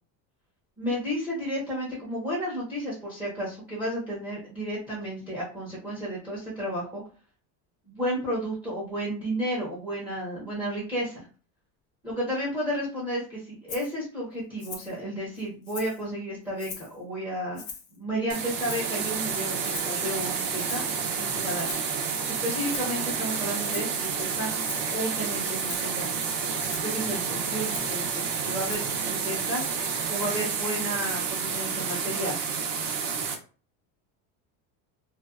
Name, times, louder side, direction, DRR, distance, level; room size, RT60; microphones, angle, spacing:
voice 1, 0.8-7.0 7.9-11.3 12.0-17.6 17.9-21.7 22.3-26.1 26.7-29.6 30.1-32.4, equal, 5° right, -6 dB, 0.7 m, -32 dB
Rattle (instrument), 13.7-13.9 14.6-15.0 15.4-16.0 16.6-17.0 17.6-18.0 18.6-19.0 19.6-20.0 20.6-20.9 21.6-21.9 22.6-23.0 23.6-24.0 24.6-24.9 25.6-25.9 26.6-26.9 27.6-28.0 28.6-29.0 29.6-29.7, left 6 dB, 30° left, 0.4 m, -41 dB
sound 1, 18.3-33.3, right 6 dB, 55° right, 0.7 m, -30 dB
2.5 x 2.2 x 2.3 m, 0.37 s
cardioid pair, 155°, 41 cm